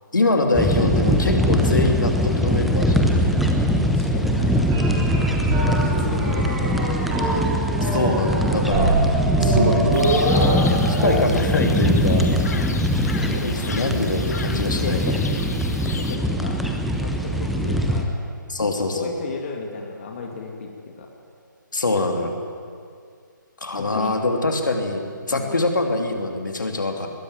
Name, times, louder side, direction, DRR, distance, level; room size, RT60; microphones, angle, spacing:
voice 1, 0.1-3.1 7.8-8.9 9.4-10.0 10.9-12.3 13.4-15.1 18.5-19.1 21.7-22.3 23.6-25.0 25.3-27.1, left 2 dB, 70° left, 4 dB, 3.0 m, -24 dB
sound 1, 0.5-18.0, equal, ahead, 1.0 m, -22 dB
voice 2, 3.9-4.7 5.5-7.2 13.3-13.8 14.5-15.1 15.6-16.6 16.9-18.2 18.6-21.1 23.8-24.2 25.3-25.5, left 4 dB, 35° left, 2 dB, 2.3 m, -34 dB
sound 2, 4.7-11.1, right 1 dB, 15° right, 5.1 m, -24 dB
sound 3, 9.9-16.2, left 4 dB, 50° left, 1.7 m, -34 dB
20.5 x 16.0 x 9.5 m, 2.2 s
figure-of-eight pair, 145°, 11 cm